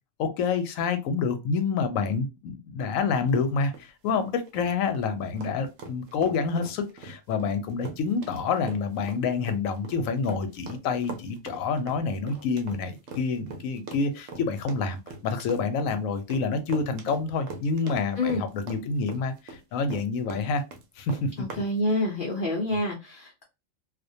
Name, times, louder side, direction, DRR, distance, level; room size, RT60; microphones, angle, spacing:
voice 1, 0.2-20.6 21.0-21.3, left 5 dB, 85° left, 1.0 m, -28 dB
sound 1, 3.3-21.7, right 3 dB, 75° right, 1.0 m, -41 dB
voice 2, 21.4-23.4, left 1 dB, 55° left, 0.6 m, -27 dB
2.4 x 2.1 x 2.6 m
omnidirectional pair, 1.4 m